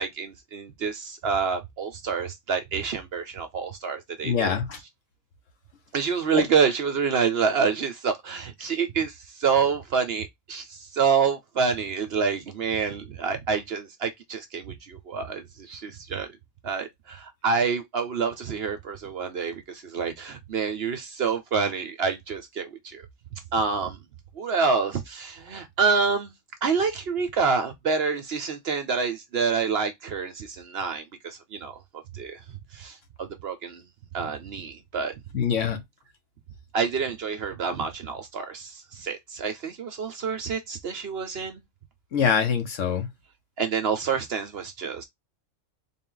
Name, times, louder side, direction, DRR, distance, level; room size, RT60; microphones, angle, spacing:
voice 1, 0.0-4.5 5.9-16.3 16.6-23.0 23.3-24.0 24.3-26.3 26.6-31.8 32.1-32.4 32.7-33.9 34.1-35.2 36.7-41.6 43.6-45.0, right 5 dB, 55° right, 0.8 m, -27 dB
voice 2, 4.2-4.8 6.3-6.4 35.3-35.8 42.1-43.1, left 7 dB, 65° left, 1.2 m, -24 dB
3.8 x 2.5 x 3.7 m
omnidirectional pair, 1.4 m